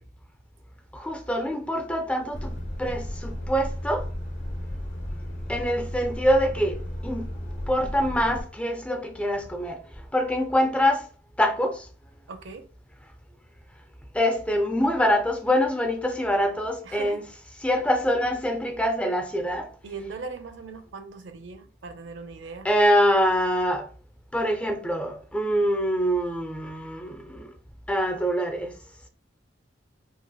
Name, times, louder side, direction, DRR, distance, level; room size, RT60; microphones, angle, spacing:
voice 1, 0.9-2.5 2.8-4.1 5.5-7.2 7.7-9.8 10.1-11.0 11.4-11.8 14.1-17.2 17.6-19.7 22.6-23.9 24.3-27.5 27.9-28.7, equal, 5° left, 0.5 m, -24 dB
Truck, 2.3-8.4, equal, 75° left, 1.0 m, -34 dB
voice 2, 12.3-12.7 16.8-17.2 19.8-22.7, right 4 dB, 75° right, 0.6 m, -39 dB
4.7 x 2.0 x 2.2 m
head